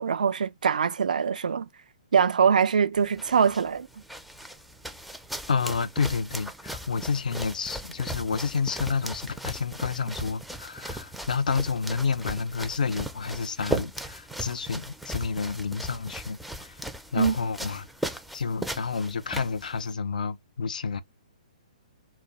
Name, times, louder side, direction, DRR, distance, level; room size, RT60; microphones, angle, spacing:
voice 1, 0.0-1.7 2.1-3.9 17.2-17.3, right 6 dB, 80° right, 0.4 m, -23 dB
sound 1, 2.9-19.9, right 1 dB, ahead, 0.3 m, -38 dB
voice 2, 5.5-16.8 17.1-17.9 18.3-21.0, left 5 dB, 80° left, 0.4 m, -29 dB
2.2 x 2.0 x 3.8 m
hypercardioid pair, 135°, 4 cm